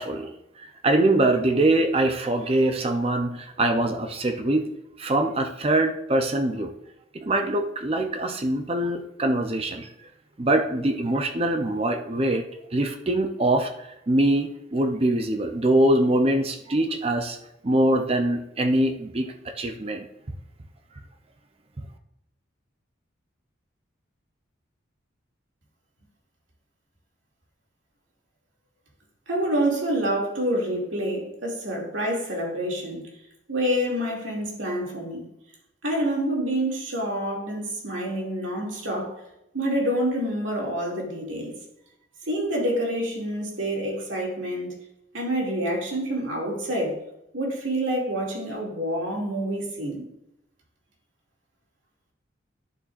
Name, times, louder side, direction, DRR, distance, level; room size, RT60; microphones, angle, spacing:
voice 1, 0.0-4.7 5.0-6.7 7.1-9.9 10.4-17.4 17.6-20.1, right 1 dB, 30° right, 0.6 m, -23 dB
voice 2, 29.3-33.1 33.5-35.3 35.8-39.2 39.5-41.6 42.3-44.7 45.1-47.0 47.3-50.1, right 1 dB, 80° right, 2.4 m, -27 dB
11.0 x 6.9 x 2.5 m
head